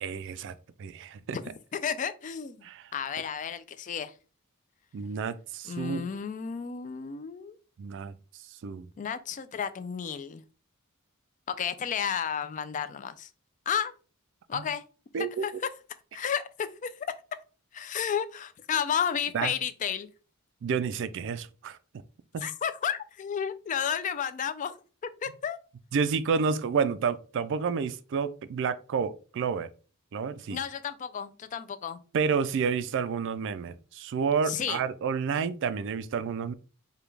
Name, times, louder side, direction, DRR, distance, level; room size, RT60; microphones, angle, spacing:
voice 1, 0.0-1.4 2.6-2.9 4.9-6.1 7.8-8.1 8.6-8.9 14.5-14.6 15.1-15.5 19.3-19.5 20.6-21.8 22.3-22.4 25.9-29.7 30.1-30.6 32.1-36.5, right 6 dB, 60° right, 0.3 m, -30 dB
voice 2, 1.7-2.6 2.9-4.1 5.7-7.6 9.0-10.4 11.5-13.3 13.7-13.9 14.5-14.8 15.2-15.5 16.1-17.1 17.7-20.1 22.4-24.8 25.2-25.6 30.5-32.0 34.5-34.8, left 7 dB, 35° left, 0.3 m, -32 dB
4.9 x 2.2 x 3.3 m
head